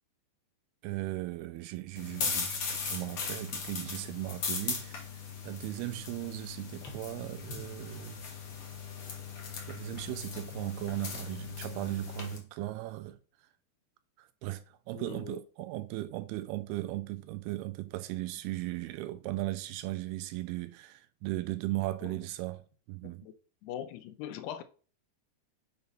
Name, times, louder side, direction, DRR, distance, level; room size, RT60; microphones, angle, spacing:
voice 1, 0.8-5.1 5.4-8.2 9.7-13.2 14.2-23.3, right 17 dB, 85° right, 2.4 m, -37 dB
sound 1, 2.0-12.4, left 5 dB, 60° left, 1.5 m, -38 dB
voice 2, 14.9-15.4 23.0-23.3 23.6-24.6, left 10 dB, 90° left, 2.7 m, -41 dB
6.9 x 4.1 x 5.2 m
omnidirectional pair, 4.7 m